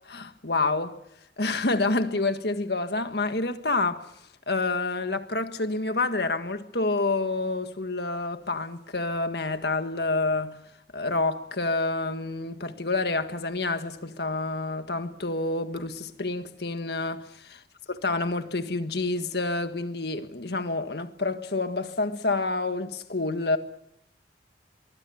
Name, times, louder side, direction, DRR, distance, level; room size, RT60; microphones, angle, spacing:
voice 1, 0.1-0.9 1.4-4.0 4.5-10.5 10.9-17.6 18.0-23.6, left 3 dB, 60° left, 1.7 m, -28 dB
24.5 x 23.5 x 7.1 m
head